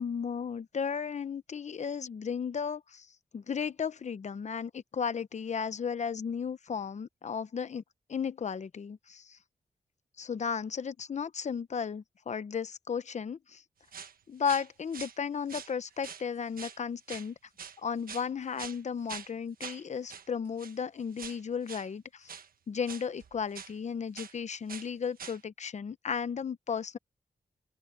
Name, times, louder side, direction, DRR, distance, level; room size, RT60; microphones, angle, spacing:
voice 1, 0.0-3.1 3.3-7.8 8.1-9.4 10.2-13.6 14.3-17.4 17.8-22.3 22.7-27.0, left 6 dB, 50° left, 0.8 m, -34 dB
sound 1, 13.9-14.1 14.4-15.2 15.5-16.3 16.6-16.8 17.1-17.3 17.6-18.3 18.6-18.8 19.1-19.3 19.6-19.8 20.1-20.3 20.6-20.8 21.1-21.4 21.7-21.9 22.3-22.5 22.9-23.7 24.2-24.4 24.7-24.9 25.2-25.4, right 7 dB, 70° right, 1.3 m, -44 dB
open air
wide cardioid pair, 115°, 15 cm